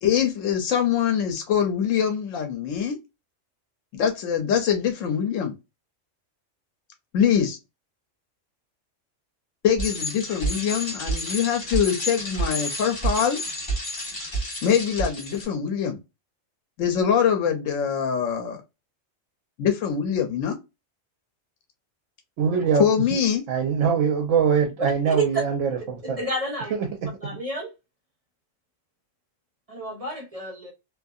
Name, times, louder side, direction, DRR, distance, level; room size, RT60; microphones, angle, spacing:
voice 1, 0.0-3.0 3.9-5.5 7.1-7.6 9.6-13.4 14.6-16.0 16.8-18.6 19.6-20.5 22.8-23.4, left 8 dB, 90° left, 1.0 m, -23 dB
Bicycle, 9.8-15.4, right 1 dB, 40° left, 1.6 m, -30 dB
voice 2, 22.4-22.9 23.5-26.2 26.8-27.2, right 6 dB, 85° right, 0.9 m, -23 dB
voice 3, 26.0-26.7 27.2-27.7 29.7-30.7, left 1 dB, 30° right, 0.9 m, -32 dB
2.6 x 2.5 x 2.3 m
omnidirectional pair, 1.3 m